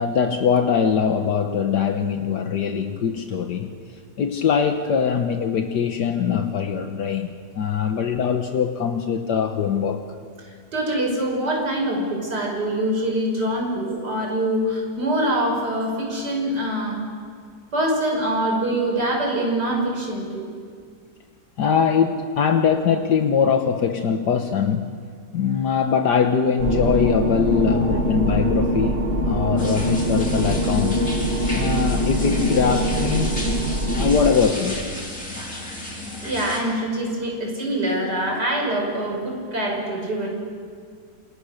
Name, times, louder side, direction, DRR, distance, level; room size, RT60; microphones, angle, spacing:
voice 1, 0.0-3.7 4.2-10.0 21.6-25.0 25.3-31.1 31.5-33.4 33.9-34.8, left 6 dB, 75° left, 5 dB, 1.8 m, -22 dB
voice 2, 10.7-17.0 17.7-20.5 27.7-28.0 36.2-40.3, right 1 dB, 75° right, 0 dB, 6.6 m, -24 dB
sound 1, 26.6-34.3, equal, 35° right, 1.9 m, -23 dB
sound 2, 29.6-36.6, left 1 dB, 45° left, 5.7 m, -33 dB
28.5 x 27.5 x 6.6 m, 2.1 s
omnidirectional pair, 1.8 m